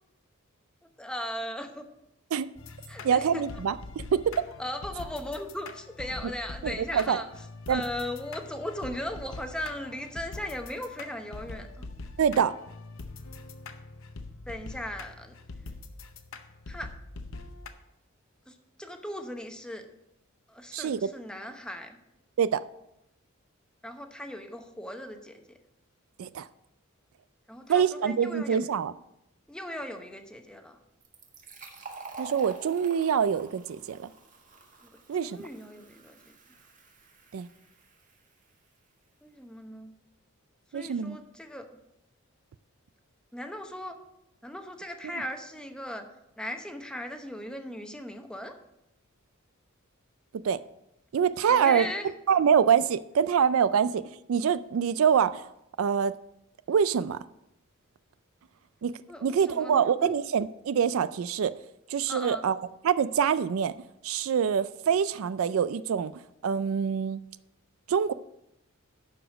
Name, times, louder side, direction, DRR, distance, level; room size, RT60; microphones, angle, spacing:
voice 1, 0.8-1.9 2.9-3.4 4.6-7.3 7.7-11.8 14.5-15.4 16.7-16.9 18.5-19.9 20.5-22.0 23.8-25.4 27.5-28.6 29.5-30.8 35.2-36.3 39.2-39.9 40.7-41.7 43.3-44.0 44.4-46.1 46.4-48.5 51.5-52.1 59.1-60.1 62.1-62.5, left 1 dB, 5° left, 5 dB, 0.9 m, -38 dB
sound 1, 2.6-17.7, left 3 dB, 65° left, 0.8 m, -43 dB
voice 2, 3.0-4.3 6.6-7.2 7.7-7.8 12.2-12.5 20.7-21.1 22.4-22.6 26.2-26.5 27.7-28.9 32.2-34.0 35.1-35.4 37.3-37.5 40.7-41.2 50.4-50.6 51.1-51.9 52.3-54.0 54.3-55.5 55.8-56.1 56.7-57.2 58.8-58.9 59.2-61.5 61.9-62.6 62.8-63.7 64.0-66.1 66.4-67.2 67.9-68.1, right 7 dB, 70° right, 15 dB, 0.4 m, -25 dB
Fill (with liquid), 31.0-38.4, right 4 dB, 40° right, 1.5 m, -48 dB
11.5 x 4.9 x 6.1 m, 0.83 s
head